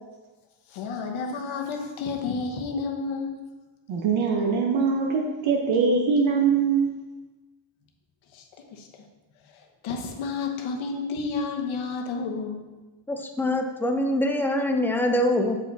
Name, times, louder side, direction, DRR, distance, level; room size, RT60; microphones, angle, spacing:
voice 1, 0.7-3.4 8.3-8.4 8.7-8.9 9.5-12.7, left 4 dB, 80° left, 2 dB, 1.1 m, -31 dB
voice 2, 3.9-6.9, right 5 dB, 80° right, 1 dB, 1.0 m, -22 dB
voice 3, 13.1-15.6, left 1 dB, 5° left, 4 dB, 0.4 m, -24 dB
7.2 x 4.7 x 4.0 m, 1.2 s
cardioid pair, 135°, 47 cm